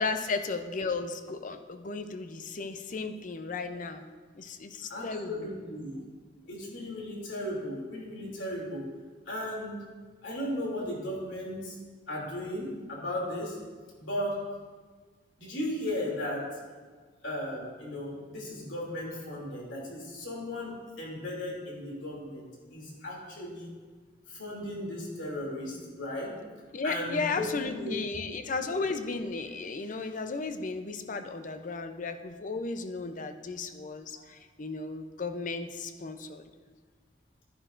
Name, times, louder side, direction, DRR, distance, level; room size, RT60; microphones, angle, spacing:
voice 1, 0.0-4.1 4.3-5.5 26.7-36.4, left 4 dB, 45° left, 8 dB, 0.6 m, -34 dB
voice 2, 4.9-6.0 6.5-8.9 9.3-9.8 10.2-11.8 12.1-13.6 14.0-14.4 15.4-16.4 17.2-23.7 24.3-26.3 26.8-27.9, left 1 dB, 90° left, -3 dB, 2.8 m, -36 dB
11.0 x 10.5 x 2.6 m, 1.5 s
head